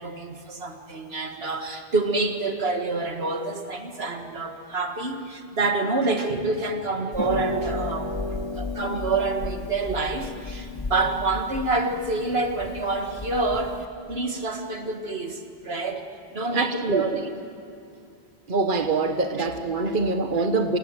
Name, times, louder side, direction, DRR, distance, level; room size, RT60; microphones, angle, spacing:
voice 1, 0.0-8.1 8.6-16.1 16.3-17.3 19.3-19.5 19.9-20.0 20.4-20.5, right 3 dB, 70° right, 5 dB, 2.1 m, -27 dB
Harp, 7.1-13.9, left 2 dB, 25° left, 1.2 m, -33 dB
voice 2, 16.5-17.0 18.5-20.8, right 3 dB, 50° right, 6 dB, 1.5 m, -24 dB
27.5 x 18.0 x 9.1 m, 2.5 s
omnidirectional pair, 1.1 m